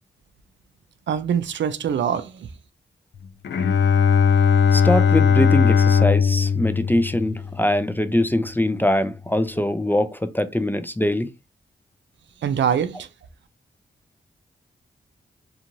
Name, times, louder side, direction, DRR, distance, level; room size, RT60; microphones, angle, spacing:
voice 1, 1.1-2.5 12.4-13.1, right 8 dB, 75° right, 0.4 m, -23 dB
Bowed string instrument, 3.4-8.0, left 6 dB, 70° left, 0.4 m, -18 dB
voice 2, 4.7-11.3, left 1 dB, 10° left, 0.4 m, -22 dB
2.5 x 2.4 x 2.9 m
cardioid pair, 60°, 19 cm